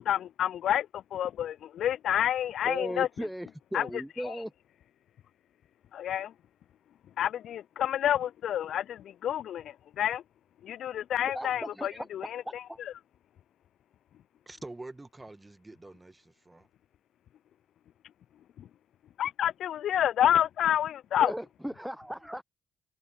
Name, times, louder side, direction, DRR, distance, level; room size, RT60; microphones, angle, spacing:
voice 1, 0.0-3.1 3.7-4.4 5.9-6.3 7.2-10.2 10.6-12.6 18.6-18.7 19.2-21.3, left 11 dB, 65° left, 0.3 m, -29 dB
voice 2, 2.7-4.5 11.2-12.1 12.5-12.8 21.2-22.4, equal, 5° right, 0.7 m, -37 dB
voice 3, 14.5-16.7, right 2 dB, 20° right, 1.8 m, -46 dB
hypercardioid pair, 45°, 0 cm